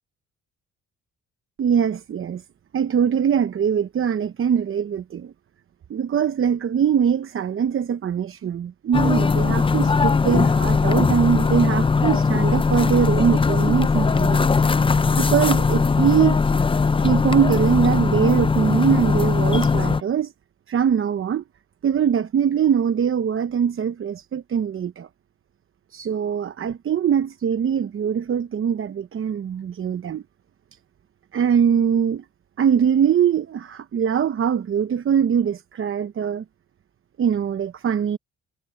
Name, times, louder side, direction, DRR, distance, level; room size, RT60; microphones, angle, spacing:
voice 1, 1.6-2.4 2.7-5.3 5.9-14.5 15.2-16.4 17.0-20.3 20.7-21.4 21.8-25.1 25.9-30.2 31.3-32.2 32.6-36.4 37.2-38.2, right 8 dB, 45° right, 0.9 m, -22 dB
sound 1, 8.9-20.0, left 4 dB, 20° left, 0.5 m, -19 dB
cardioid pair, 90°, 30 cm